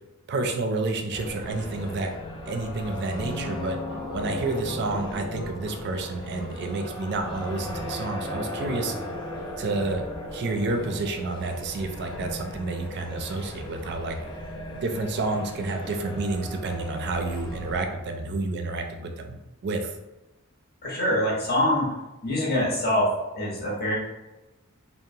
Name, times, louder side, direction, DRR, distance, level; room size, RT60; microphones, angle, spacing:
voice 1, 0.3-2.1 2.5-3.8 4.1-8.9 9.6-10.1 10.3-14.2 14.8-20.0, right 3 dB, 50° right, 5 dB, 0.4 m, -29 dB
sound 1, 1.1-17.9, left 1 dB, 20° left, 0.4 m, -37 dB
sound 2, 1.5-2.0 2.4-3.0 3.4-5.9 6.3-6.8 7.3-9.2, equal, 75° left, 1.2 m, -42 dB
voice 2, 20.8-21.9 22.2-23.1 23.3-24.0, left 1 dB, 45° left, -4 dB, 0.8 m, -24 dB
2.8 x 2.0 x 2.6 m, 1.0 s
head